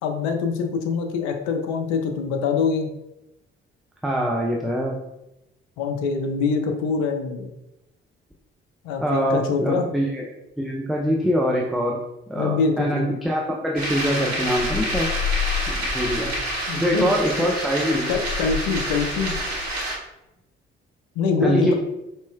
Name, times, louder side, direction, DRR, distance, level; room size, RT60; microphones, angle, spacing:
voice 1, 0.0-2.9 5.8-7.5 8.8-9.9 12.4-13.1 16.7-17.5 18.1-19.4 21.2-21.7, left 5 dB, 60° left, 4 dB, 0.6 m, -24 dB
voice 2, 4.0-5.0 9.0-10.3 10.6-12.0 12.3-15.1 15.7-16.3 16.8-18.1 21.4-21.7, equal, ahead, -1 dB, 0.4 m, -23 dB
sound 1, 13.8-20.0, left 1 dB, 85° right, 0.6 m, -27 dB
4.2 x 3.1 x 2.2 m, 0.94 s
figure-of-eight pair, 45°, 31 cm